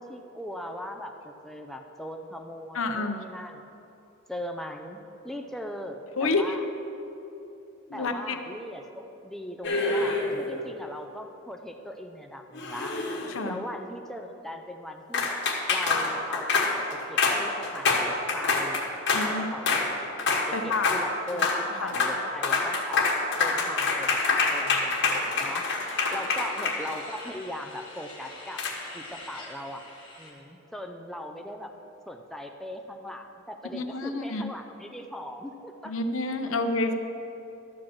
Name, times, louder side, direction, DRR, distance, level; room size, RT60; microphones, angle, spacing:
voice 1, 0.0-3.7 4.3-6.6 7.9-12.9 13.4-15.4 15.7-18.8 19.2-20.1 20.5-23.0 23.4-24.2 24.5-25.7 26.1-28.6 28.9-29.8 30.2-31.7 32.1-35.9 36.5-36.7, left 1 dB, ahead, 3 dB, 0.5 m, -39 dB
voice 2, 2.7-3.2 6.2-6.6 7.9-8.4 13.3-13.6 19.1-19.5 20.5-20.9 21.8-21.9 33.7-34.4 35.8-36.9, left 3 dB, 80° left, 7 dB, 0.7 m, -28 dB
sound 1, 9.6-10.5 12.5-13.5 15.1-19.3 19.7-19.9 20.2-20.5 20.7-21.0 21.3-21.6 21.9-22.2 22.4-27.2 28.6-28.7, left 4 dB, 60° left, 1.3 m, -26 dB
sound 2, 25.2-30.3, left 2 dB, 25° left, 2.1 m, -45 dB
12.0 x 5.1 x 7.3 m, 2.9 s
head